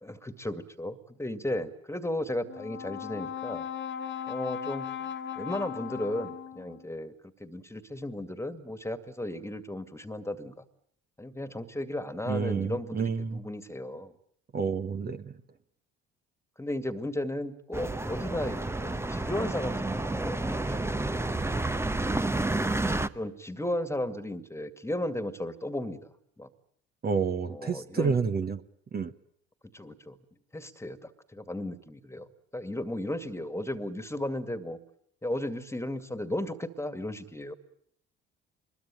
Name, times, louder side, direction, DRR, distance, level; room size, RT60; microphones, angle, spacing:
voice 1, 0.0-3.7 4.3-4.9 5.4-10.6 11.2-14.1 16.6-20.8 22.8-26.1 26.4-26.5 27.5-28.2 29.7-30.2 30.5-32.3 32.5-34.8 35.2-37.5, left 1 dB, 10° left, 12 dB, 2.1 m, -35 dB
Brass instrument, 2.5-6.9, left 8 dB, 35° left, 1.7 m, -37 dB
voice 2, 12.3-13.4 14.5-15.3 27.0-28.6 28.9-29.1, right 5 dB, 30° right, 9 dB, 1.2 m, -29 dB
sound 1, 17.7-23.1, right 2 dB, 10° right, 1.0 m, -30 dB
24.5 x 21.5 x 8.9 m, 0.67 s
figure-of-eight pair, 55°, 32 cm